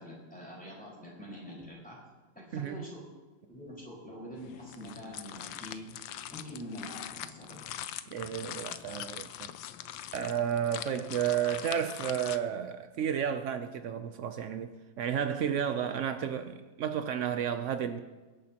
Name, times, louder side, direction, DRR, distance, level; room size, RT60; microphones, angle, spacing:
voice 1, 0.0-2.0 2.3-3.0 3.5-5.8 6.3-7.6, equal, 5° left, -5 dB, 4.7 m, -45 dB
voice 2, 2.5-2.9 8.1-9.5 10.1-18.0, right 8 dB, 85° right, 8 dB, 0.6 m, -32 dB
sound 1, 4.4-12.4, left 11 dB, 90° left, 1.3 m, -43 dB
23.5 x 10.0 x 2.9 m, 1.3 s
omnidirectional pair, 2.0 m